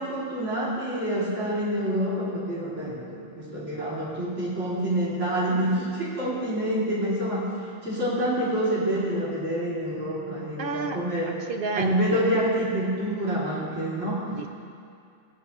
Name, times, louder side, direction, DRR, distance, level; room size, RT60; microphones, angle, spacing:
voice 1, 0.0-7.5 7.8-11.3 11.7-14.3, right 1 dB, 75° right, -8 dB, 2.9 m, -27 dB
voice 2, 10.6-11.0 11.5-12.2 14.3-14.5, right 5 dB, 60° right, 6 dB, 0.6 m, -30 dB
17.5 x 8.3 x 3.0 m, 2.4 s
omnidirectional pair, 1.2 m